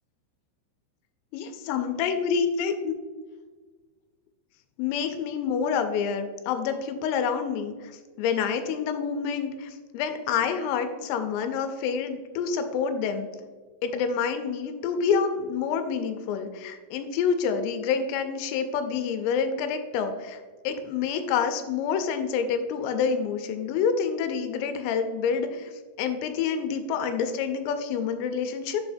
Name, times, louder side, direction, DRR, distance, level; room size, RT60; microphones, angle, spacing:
voice 1, 1.3-2.9 4.8-7.7 8.2-13.3 13.8-20.4 20.6-25.7 26.0-28.8, left 6 dB, 85° left, 7 dB, 3.1 m, -27 dB
7.3 x 5.6 x 2.6 m, 1.4 s
omnidirectional pair, 6.0 m